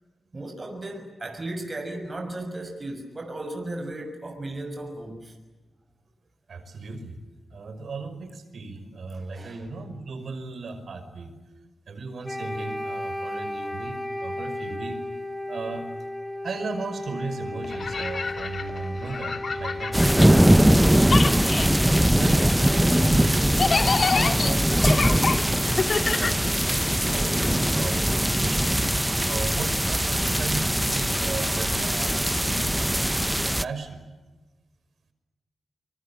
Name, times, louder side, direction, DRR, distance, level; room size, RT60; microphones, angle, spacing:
voice 1, 0.3-5.4 9.1-9.7, right 1 dB, 35° right, 6.1 m, -35 dB
voice 2, 6.5-7.2 7.5-11.3 11.9-15.0 15.5-15.9 16.4-23.6 24.1-26.7 27.0-34.0, right 3 dB, 70° right, 5.6 m, -36 dB
Wind instrument woodwind instrument, 12.2-20.3, left 1 dB, 15° left, 3.8 m, -34 dB
sound 1, 17.6-20.8 21.0-27.0, left 4 dB, 60° left, 2.6 m, -28 dB
sound 2, 19.9-33.6, right 1 dB, 5° right, 0.9 m, -21 dB
25.0 x 24.0 x 8.9 m
cardioid pair, 55°, 0 cm